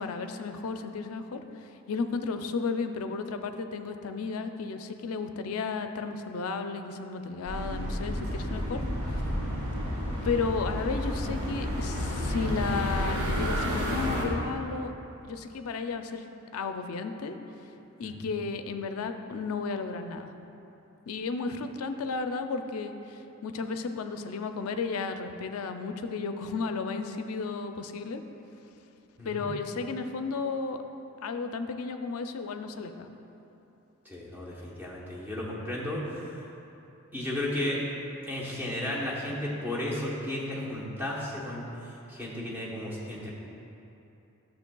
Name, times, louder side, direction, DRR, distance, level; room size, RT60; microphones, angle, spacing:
voice 1, 0.0-9.2 10.2-14.9 15.2-16.3 16.5-17.4 18.0-20.3 21.1-28.2 29.2-30.8 31.2-33.1, left 4 dB, 75° left, 7 dB, 0.4 m, -33 dB
sound 1, 7.4-14.2, equal, 70° right, 1.4 m, -31 dB
voice 2, 29.2-29.5 34.0-36.5 37.1-37.8 38.2-41.7 42.1-43.3, left 1 dB, 10° right, -5 dB, 0.9 m, -34 dB
10.5 x 6.5 x 2.3 m, 2.9 s
head